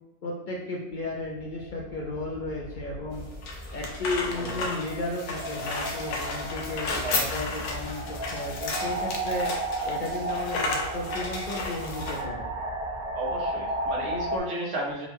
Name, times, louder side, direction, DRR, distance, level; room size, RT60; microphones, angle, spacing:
voice 1, 0.2-3.2 3.7-9.5 9.8-12.5, left 2 dB, 55° left, -3 dB, 0.6 m, -34 dB
sound 1, 1.2-14.4, right 1 dB, 50° right, 0.5 m, -34 dB
sound 2, 3.1-12.2, left 3 dB, 80° left, 0.9 m, -33 dB
voice 2, 13.1-15.1, right 1 dB, 80° right, -2 dB, 1.2 m, -33 dB
3.6 x 2.1 x 3.3 m, 0.89 s
omnidirectional pair, 1.2 m